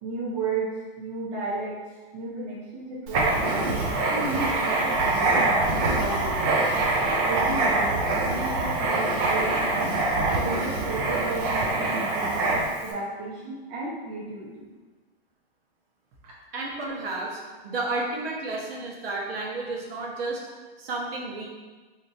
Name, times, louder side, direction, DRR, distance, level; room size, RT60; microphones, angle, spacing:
voice 1, 0.0-6.6 7.2-9.9 10.3-14.7 16.2-16.3, right 3 dB, 45° right, -5 dB, 0.8 m, -34 dB
Writing, 3.1-12.9, right 2 dB, 25° right, 0.3 m, -24 dB
voice 2, 16.5-20.4 20.8-21.5, right 2 dB, 70° right, -2 dB, 1.1 m, -32 dB
3.2 x 2.8 x 3.8 m, 1.3 s
hypercardioid pair, 150°, 30 cm